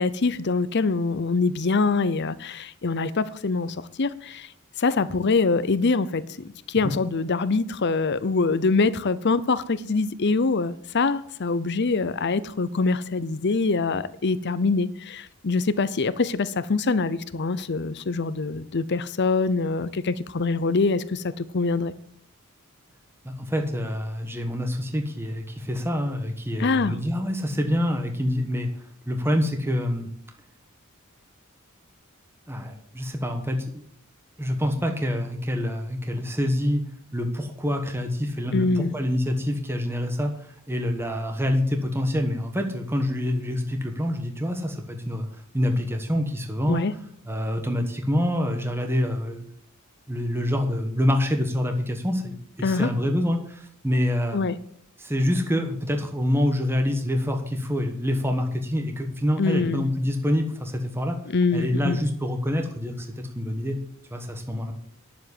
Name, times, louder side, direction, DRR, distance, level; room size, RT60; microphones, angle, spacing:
voice 1, 0.0-4.5 4.8-6.2 6.7-21.9 26.6-26.9 38.5-38.9 46.7-46.9 52.6-52.9 54.3-54.6 59.4-59.8 61.3-62.0, left 4 dB, 55° left, 0.7 m, -24 dB
voice 2, 23.2-28.7 29.1-30.1 32.5-33.8 34.4-36.8 37.1-45.3 45.5-46.8 47.3-49.4 50.1-54.4 55.0-61.2 61.5-63.8 64.1-64.7, left 1 dB, 10° right, 1.2 m, -26 dB
10.5 x 7.3 x 8.1 m
head